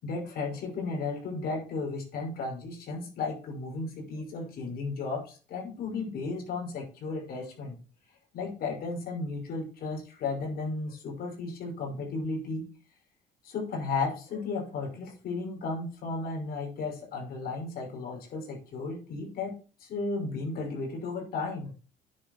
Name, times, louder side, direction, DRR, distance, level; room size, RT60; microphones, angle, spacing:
voice 1, 0.0-7.8 8.3-12.7 13.4-21.7, left 3 dB, 65° left, 1 dB, 5.7 m, -34 dB
9.8 x 7.4 x 4.5 m, 0.36 s
cardioid pair, 110°, 17 cm